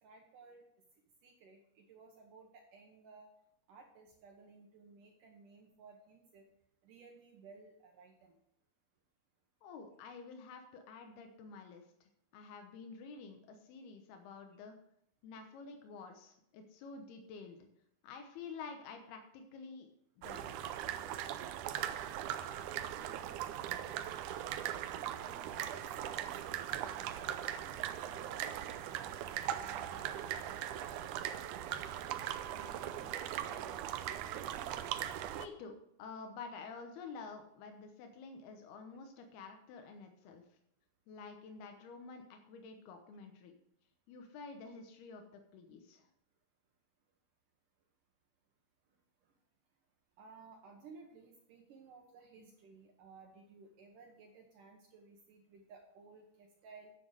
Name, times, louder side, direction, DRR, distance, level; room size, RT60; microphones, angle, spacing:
voice 1, 0.0-0.6 1.2-3.3 3.7-6.5 6.8-8.4 25.1-32.1 32.5-34.3 50.2-56.9, right 4 dB, 65° right, 2 dB, 2.6 m, -57 dB
voice 2, 9.6-14.7 15.2-17.6 18.0-19.9 20.2-20.7 35.3-40.4 41.1-43.5 44.1-46.1 52.4-52.5, left 4 dB, 90° left, 5 dB, 3.1 m, -50 dB
sound 1, 20.2-35.5, right 11 dB, 85° right, 1.7 m, -40 dB
9.7 x 7.8 x 6.5 m, 0.75 s
omnidirectional pair, 4.4 m